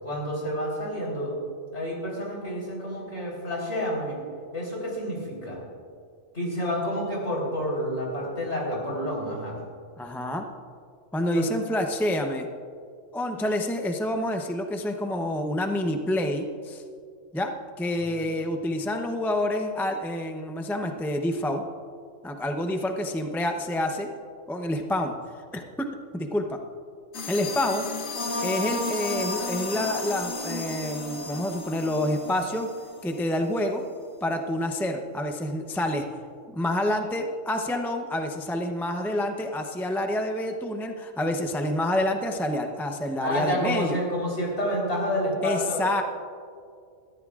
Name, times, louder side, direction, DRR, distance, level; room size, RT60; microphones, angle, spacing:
voice 1, 0.0-1.3 1.7-4.2 4.5-5.6 6.3-9.6 11.3-11.5 18.0-18.4 43.2-45.8, equal, 55° left, -4 dB, 4.4 m, -29 dB
voice 2, 10.0-10.4 11.1-12.5 13.1-16.8 17.3-17.5 17.8-21.7 22.2-24.1 24.5-25.1 25.5-25.9 26.1-26.6 27.3-27.9 28.4-32.7 33.0-33.8 34.2-36.1 36.5-44.0 45.4-46.0, left 1 dB, ahead, 4 dB, 0.5 m, -28 dB
sound 1, 27.1-33.4, left 2 dB, 90° left, 1.6 m, -33 dB
22.0 x 14.5 x 2.4 m, 2.3 s
omnidirectional pair, 1.4 m